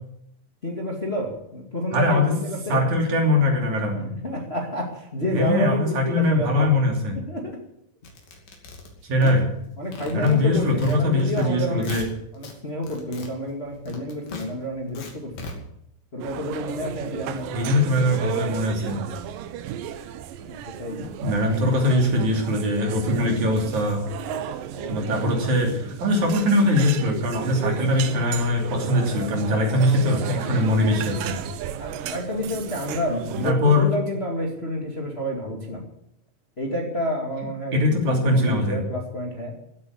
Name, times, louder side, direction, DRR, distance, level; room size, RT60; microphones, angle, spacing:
voice 1, 0.6-2.8 3.9-6.7 7.1-7.6 9.2-9.4 9.8-11.9 12.3-15.6 16.1-17.6 18.8-18.9 20.4-21.0 24.7-25.2 30.5-30.8 31.8-35.8 36.6-39.6, left 1 dB, 20° left, 0 dB, 2.1 m, -29 dB
voice 2, 1.9-2.3 2.7-4.0 5.3-7.2 9.1-9.5 10.1-12.1 17.5-19.0 21.2-24.0 24.9-31.4 33.4-33.9 37.7-38.8, left 1 dB, 60° right, 1 dB, 4.3 m, -21 dB
sound 1, 8.0-9.7 9.9-11.5 11.7-12.5 12.8-15.5, left 3 dB, 85° left, 4.4 m, -39 dB
sound 2, 16.2-33.5, right 10 dB, 80° right, 2.6 m, -34 dB
15.5 x 8.6 x 9.7 m, 0.77 s
omnidirectional pair, 3.9 m